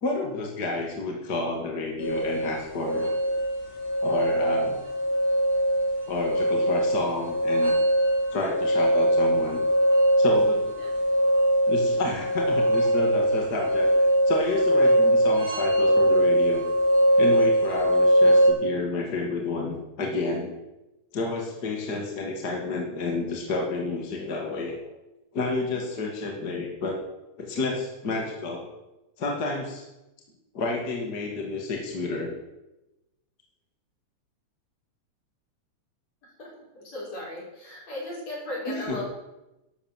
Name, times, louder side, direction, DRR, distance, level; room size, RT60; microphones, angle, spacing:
voice 1, 0.0-3.0 4.0-4.8 6.1-7.7 8.3-9.6 10.2-10.5 11.7-13.9 14.3-16.6 17.2-20.5 21.1-24.8 25.3-27.0 27.4-28.6 29.2-29.9 30.5-32.3 38.7-39.0, left 3 dB, 35° left, 1 dB, 2.4 m, -30 dB
sound 1, 2.0-18.5, equal, 5° left, 6.6 m, -22 dB
voice 2, 10.5-10.9 36.2-36.5 36.7-39.0, left 1 dB, 60° left, -5 dB, 7.6 m, -37 dB
12.5 x 12.0 x 7.3 m, 0.98 s
omnidirectional pair, 3.4 m